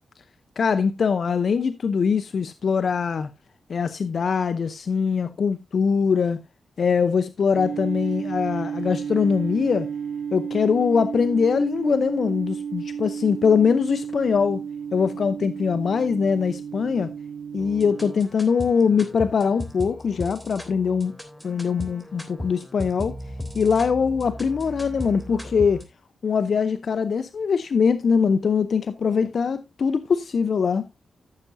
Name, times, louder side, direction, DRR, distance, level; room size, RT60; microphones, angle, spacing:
voice 1, 0.6-3.3 3.7-6.4 6.8-9.9 10.3-14.6 14.9-17.1 17.5-21.1 21.4-23.2 23.5-25.8 26.2-30.9, left 6 dB, 65° left, 0.7 m, -22 dB
sound 1, 7.5-18.2, right 7 dB, 90° right, 1.2 m, -32 dB
sound 2, 17.6-25.8, left 1 dB, 10° left, 3.4 m, -37 dB
14.5 x 6.8 x 2.7 m
cardioid pair, 50°, 0 cm